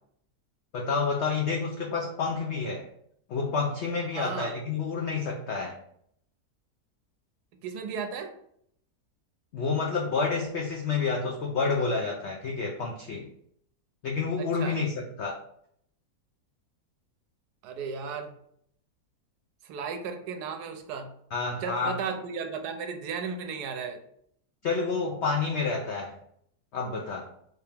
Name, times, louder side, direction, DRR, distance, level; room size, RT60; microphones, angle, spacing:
voice 1, 0.7-2.9 3.3-5.8 9.5-13.3 14.0-15.4 21.3-22.0 24.6-26.2 26.7-27.3, left 4 dB, 80° left, 0 dB, 0.6 m, -29 dB
voice 2, 4.1-4.6 7.6-8.3 14.4-14.8 17.6-18.3 19.6-21.1 21.6-24.0, right 5 dB, 80° right, 5 dB, 1.1 m, -35 dB
3.2 x 2.8 x 3.3 m, 0.69 s
omnidirectional pair, 1.7 m